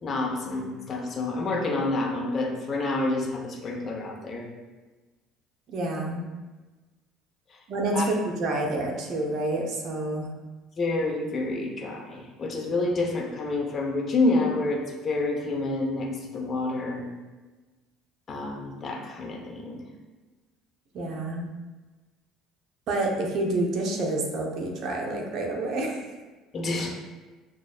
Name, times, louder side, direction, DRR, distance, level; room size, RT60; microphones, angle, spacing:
voice 1, 0.0-4.5 7.5-7.6 7.9-8.1 10.8-17.1 18.3-19.8 26.5-26.9, left 2 dB, 40° left, -1 dB, 0.8 m, -28 dB
voice 2, 5.7-6.2 7.7-10.3 20.9-21.5 22.9-26.1, right 2 dB, 50° right, 1 dB, 0.7 m, -28 dB
6.0 x 2.3 x 2.3 m, 1.2 s
figure-of-eight pair, 60°, 0 cm